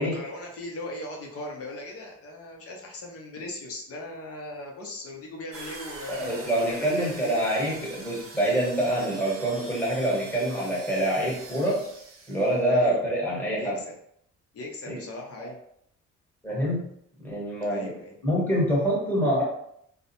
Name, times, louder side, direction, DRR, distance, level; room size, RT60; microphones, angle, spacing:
voice 1, 0.0-7.4 12.7-13.0 13.6-13.9 14.5-15.6 17.7-18.2, left 2 dB, 50° left, 0 dB, 0.7 m, -38 dB
sound 1, 5.5-12.7, right 3 dB, 45° right, 0.7 m, -44 dB
voice 2, 6.1-11.8 12.3-13.8 14.9-15.0 15.4-15.5 16.4-16.9 17.2-17.9 18.2-19.4, right 1 dB, 5° left, -5 dB, 1.2 m, -26 dB
2.3 x 2.1 x 2.8 m, 0.71 s
cardioid pair, 90°, 30 cm